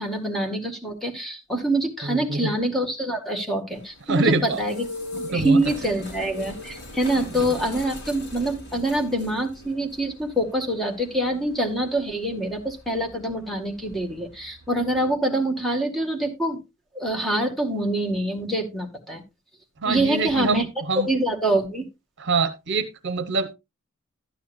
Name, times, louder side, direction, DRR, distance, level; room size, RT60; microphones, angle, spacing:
voice 1, 0.0-4.9 5.3-16.6 16.9-19.2 19.8-20.7 21.1-21.8, right 1 dB, ahead, 2 dB, 1.9 m, -25 dB
voice 2, 2.0-2.5 4.1-4.6 5.1-5.6 7.3-7.5 19.8-21.1 22.2-23.5, right 3 dB, 60° right, 12 dB, 0.9 m, -25 dB
sound 1, 3.7-15.2, left 1 dB, 55° left, 4.2 m, -41 dB
12.5 x 9.2 x 2.6 m, 0.23 s
head